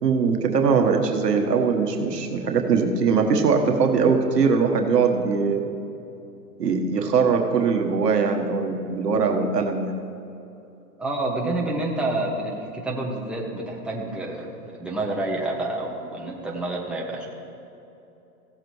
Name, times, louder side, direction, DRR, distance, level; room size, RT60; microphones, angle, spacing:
voice 1, 0.0-5.7 6.6-9.9, right 5 dB, 85° right, 3 dB, 1.5 m, -21 dB
voice 2, 11.0-17.3, right 2 dB, ahead, -3 dB, 1.6 m, -28 dB
17.0 x 7.7 x 3.2 m, 2.8 s
hypercardioid pair, 120°, 47 cm